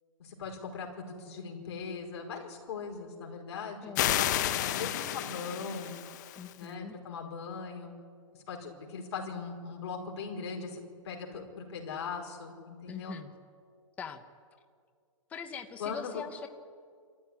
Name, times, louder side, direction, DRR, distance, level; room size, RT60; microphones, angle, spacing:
voice 1, 0.2-4.0 4.5-6.0 6.6-7.9 8.5-13.2 15.8-16.2, left 5 dB, 50° left, 1 dB, 4.9 m, -40 dB
voice 2, 3.8-4.2 6.4-7.0 12.9-13.3 14.0-14.2 15.3-16.5, left 6 dB, 10° left, 7 dB, 0.7 m, -42 dB
sound 1, 3.9-6.5, left 12 dB, 35° left, 1.0 m, -31 dB
26.0 x 14.0 x 9.8 m, 2.1 s
hypercardioid pair, 165°, 17 cm